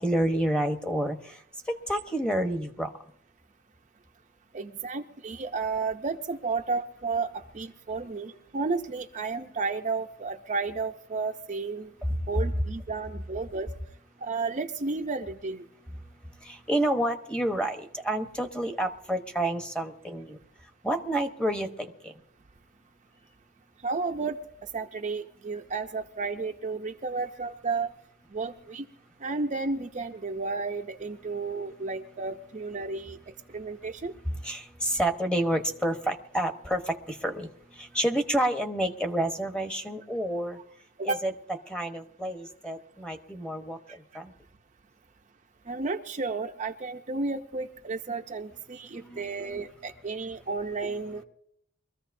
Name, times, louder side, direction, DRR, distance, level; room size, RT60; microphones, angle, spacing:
voice 1, 0.0-1.4 1.7-2.9 12.0-12.2 16.4-20.4 20.8-22.2 34.3-40.6 41.0-41.3 41.7-44.3 48.9-49.3, right 1 dB, 5° left, 5 dB, 1.0 m, -29 dB
voice 2, 4.5-11.9 12.3-13.7 14.2-15.6 23.8-24.4 24.7-27.9 28.3-28.8 29.2-33.2 33.5-34.1 41.0-41.2 45.7-51.2, right 4 dB, 35° right, 4 dB, 0.6 m, -32 dB
23.5 x 14.5 x 2.6 m, 0.68 s
head